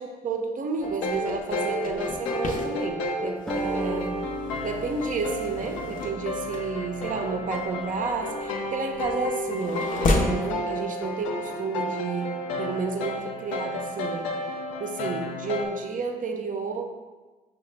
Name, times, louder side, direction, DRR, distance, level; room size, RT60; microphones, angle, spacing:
voice 1, 0.0-4.2 4.6-14.3 14.8-16.9, right 4 dB, 45° right, 4 dB, 0.6 m, -31 dB
sound 1, 0.8-15.7, left 1 dB, 90° left, 0.4 m, -32 dB
sound 2, 0.8-10.5, left 2 dB, 45° left, 0.6 m, -33 dB
Acoustic guitar, 3.5-7.9, right 1 dB, 5° left, 0.5 m, -38 dB
5.6 x 2.2 x 3.2 m, 1.2 s
hypercardioid pair, 45°, 19 cm